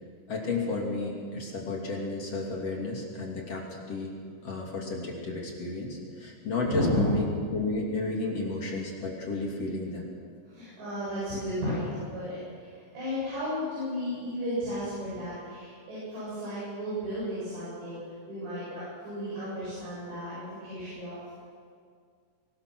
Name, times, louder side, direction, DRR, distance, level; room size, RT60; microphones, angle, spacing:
voice 1, 0.3-4.1 4.4-10.1, left 3 dB, 40° left, -2 dB, 3.4 m, -32 dB
voice 2, 6.6-7.1 10.5-18.0 18.3-21.2, equal, 75° right, -10 dB, 10.5 m, -33 dB
24.5 x 19.0 x 6.3 m, 2.1 s
omnidirectional pair, 5.1 m